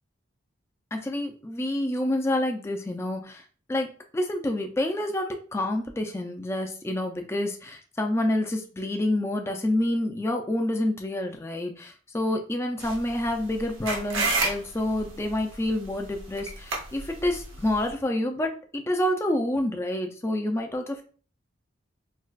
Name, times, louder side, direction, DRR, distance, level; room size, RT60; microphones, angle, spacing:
voice 1, 0.9-3.4 3.7-3.9 4.1-21.0, left 1 dB, 15° left, 3 dB, 0.3 m, -28 dB
sound 1, 12.8-17.9, right 3 dB, 90° right, 0.9 m, -32 dB
4.4 x 2.3 x 2.3 m, 0.41 s
head